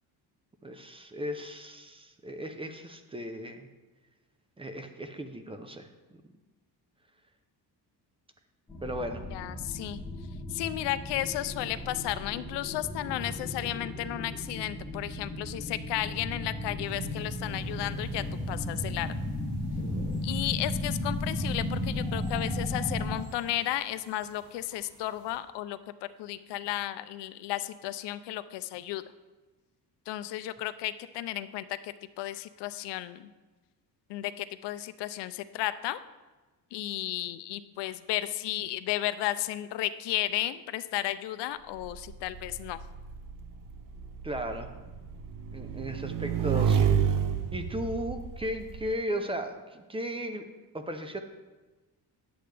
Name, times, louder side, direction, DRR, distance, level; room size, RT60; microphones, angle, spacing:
voice 1, 0.6-3.7 4.6-5.9 8.8-9.2 44.2-44.7 45.5-47.1 47.5-50.5 50.7-51.2, equal, 15° right, 7 dB, 0.5 m, -36 dB
sound 1, 8.7-23.2, left 1 dB, 5° left, 1.2 m, -35 dB
voice 2, 9.3-10.0 10.5-19.1 20.2-29.0 30.1-33.3 34.1-36.0 36.7-42.8, left 14 dB, 85° left, 14 dB, 0.5 m, -33 dB
sound 2, 16.8-25.4, right 3 dB, 80° right, 2.1 m, -47 dB
Motorcycle / Engine, 41.8-48.9, right 7 dB, 50° right, 0.7 m, -30 dB
10.5 x 7.8 x 3.3 m, 1.2 s
cardioid pair, 140°, 40 cm